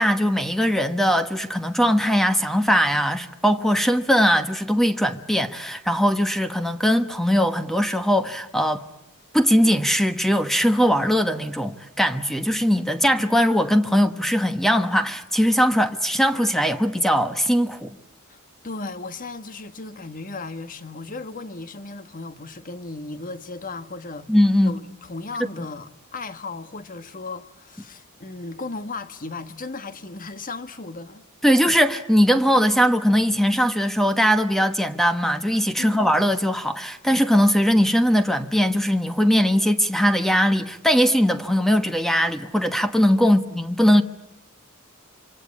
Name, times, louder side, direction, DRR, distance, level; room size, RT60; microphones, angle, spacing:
voice 1, 0.0-8.8 9.3-17.9 24.3-24.8 31.4-44.0, equal, ahead, 1.2 m, -20 dB
voice 2, 18.6-24.3 24.6-31.2 35.8-36.2 43.2-43.6, left 3 dB, 40° left, 1.4 m, -36 dB
26.5 x 26.0 x 8.7 m
head